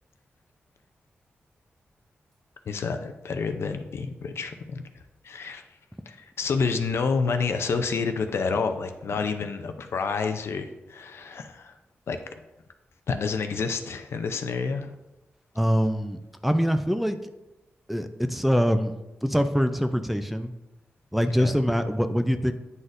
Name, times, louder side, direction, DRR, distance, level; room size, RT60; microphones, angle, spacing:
voice 1, 2.7-4.8 5.2-5.6 6.1-11.7 12.1-12.2 13.1-14.9 21.1-21.5, left 5 dB, 75° left, 7 dB, 0.5 m, -29 dB
voice 2, 15.6-17.2 17.9-18.9 19.2-20.5 21.1-22.5, equal, 5° right, 8 dB, 0.4 m, -24 dB
9.4 x 4.1 x 2.6 m, 0.98 s
cardioid pair, 85°, 4 cm